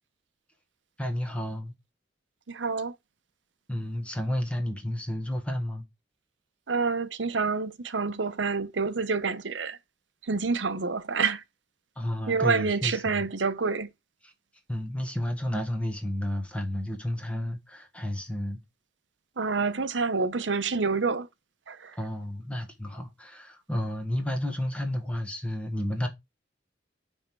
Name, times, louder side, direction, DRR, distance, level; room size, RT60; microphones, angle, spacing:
voice 1, 1.0-1.7 3.7-5.8 12.0-12.9 14.7-18.6 22.0-26.1, left 1 dB, 5° left, 1.3 m, -31 dB
voice 2, 2.5-2.9 6.7-9.8 10.2-11.4 12.3-13.9 19.4-21.3 21.7-22.0, right 4 dB, 80° right, 0.8 m, -28 dB
9.6 x 3.6 x 4.6 m
head